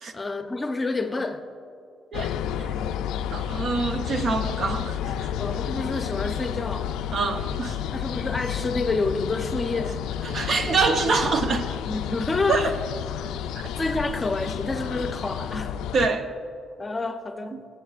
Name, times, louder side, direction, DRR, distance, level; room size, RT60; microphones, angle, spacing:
voice 1, 0.1-1.4 5.4-6.9 7.9-10.0 11.9-12.7 13.8-15.8 16.8-17.6, left 3 dB, 25° left, 0.7 m, -28 dB
sound 1, 2.1-16.1, left 9 dB, 90° left, 0.3 m, -31 dB
voice 2, 3.3-5.3 7.1-7.8 10.2-11.7 12.5-12.7 13.6-13.7 15.9-16.3 17.5-17.6, right 4 dB, 55° right, 0.8 m, -25 dB
23.0 x 7.8 x 2.4 m
cardioid pair, 90°, 0 cm